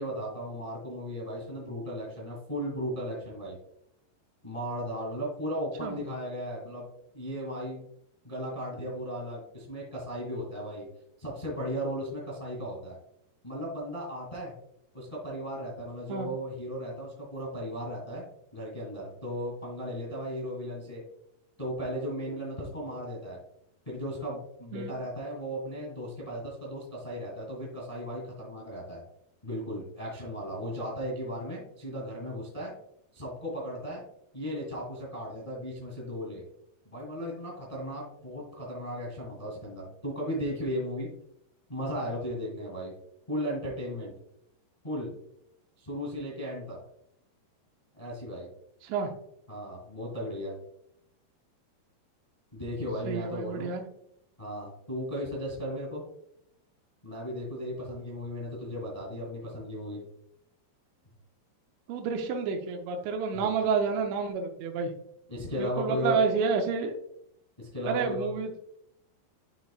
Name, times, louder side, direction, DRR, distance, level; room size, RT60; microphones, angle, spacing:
voice 1, 0.0-3.6 4.4-6.9 7.1-7.8 8.2-10.9 11.2-13.0 13.4-14.5 14.9-18.2 18.5-21.0 21.6-23.4 23.8-29.0 29.4-32.7 33.1-34.0 34.3-36.4 36.8-41.1 41.7-42.9 43.3-44.1 44.8-45.1 45.8-46.8 47.9-48.5 49.5-50.5 52.5-53.7 54.4-56.0 57.0-60.0 63.3-63.5 65.3-66.2 67.6-68.3, equal, 20° left, -4 dB, 0.9 m, -36 dB
voice 2, 53.0-53.8 61.9-64.9 65.6-66.9 67.9-68.5, right 5 dB, 85° right, 3 dB, 3.0 m, -29 dB
11.5 x 3.9 x 2.4 m, 0.74 s
omnidirectional pair, 5.0 m